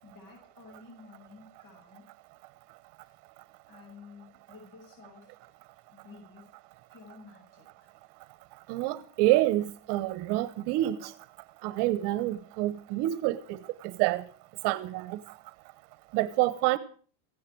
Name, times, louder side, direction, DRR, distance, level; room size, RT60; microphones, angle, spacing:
voice 1, 0.0-2.1 3.0-3.1 3.7-5.3 5.9-6.5 6.9-7.9, left 4 dB, 45° left, 6.4 m, -52 dB
voice 2, 8.7-11.1 11.6-13.4 14.0-14.2 14.6-15.2 16.1-16.8, right 16 dB, 55° right, 1.2 m, -27 dB
17.0 x 16.5 x 4.6 m
supercardioid pair, 140°, 48 cm